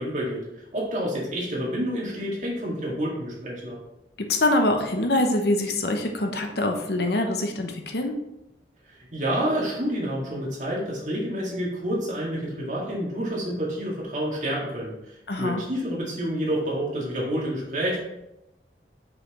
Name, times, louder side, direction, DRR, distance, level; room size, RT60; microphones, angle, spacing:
voice 1, 0.0-3.8 8.9-18.0, equal, 45° right, -5 dB, 2.1 m, -29 dB
voice 2, 4.2-8.2 15.3-15.6, left 1 dB, 70° left, 4 dB, 0.8 m, -24 dB
6.0 x 5.6 x 3.1 m, 0.88 s
head